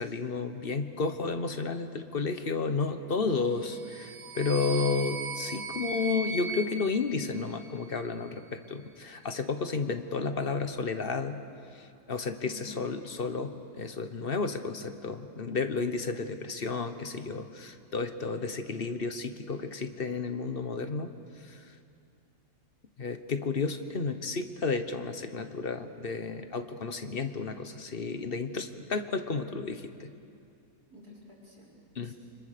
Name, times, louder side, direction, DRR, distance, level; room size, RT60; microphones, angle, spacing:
voice 1, 0.0-11.4 11.7-21.1 21.4-21.6 23.0-30.1 31.9-32.1, left 4 dB, 40° left, 8 dB, 1.3 m, -32 dB
voice 2, 3.1-3.5 12.4-12.8 30.9-32.1, left 1 dB, 75° right, -4 dB, 5.2 m, -48 dB
sound 1, 3.7-8.0, right 3 dB, 55° right, 1.8 m, -38 dB
30.0 x 25.5 x 6.8 m, 2.5 s
omnidirectional pair, 1.6 m